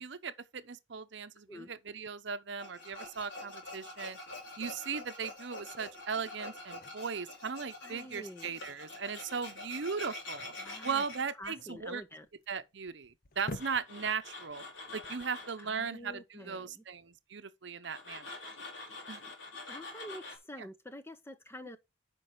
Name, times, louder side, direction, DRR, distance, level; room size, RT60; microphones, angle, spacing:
voice 1, 0.0-4.2 4.6-10.5 10.8-12.0 12.5-14.6 14.9-18.4 19.1-19.2 20.6-20.7, right 5 dB, 65° right, 0.7 m, -38 dB
Tools, 2.6-11.2 13.3-15.6 17.8-20.4, left 2 dB, 75° left, 3.6 m, -46 dB
sound 1, 2.9-16.0, left 2 dB, 50° left, 0.9 m, -53 dB
voice 2, 7.8-8.5 10.6-11.0 11.4-12.3 15.6-16.8 19.7-21.8, equal, 10° left, 0.7 m, -47 dB
9.2 x 5.2 x 4.6 m
head